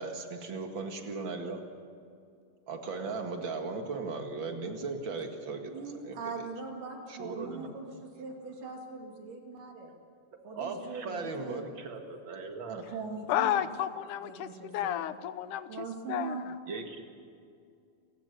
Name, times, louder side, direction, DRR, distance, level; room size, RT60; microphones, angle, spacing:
voice 1, 0.0-1.6 2.7-6.2 7.1-7.7 10.6-12.8 16.7-17.0, right 4 dB, 40° right, 4 dB, 2.3 m, -37 dB
voice 2, 5.7-9.9 10.4-11.7 12.8-13.7 14.2-15.1 15.7-16.5, right 4 dB, 85° right, 2 dB, 4.3 m, -41 dB
voice 3, 13.3-16.4, left 12 dB, 80° left, 13 dB, 2.2 m, -32 dB
29.5 x 16.0 x 6.8 m, 2.4 s
omnidirectional pair, 3.7 m